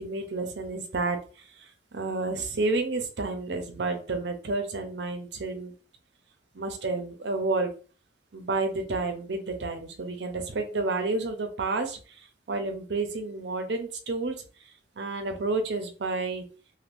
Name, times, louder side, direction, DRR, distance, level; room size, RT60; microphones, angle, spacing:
voice 1, 0.0-5.7 6.5-7.7 8.3-14.4 15.0-16.4, right 3 dB, 85° right, 6 dB, 0.7 m, -30 dB
2.6 x 2.5 x 3.4 m, 0.38 s
head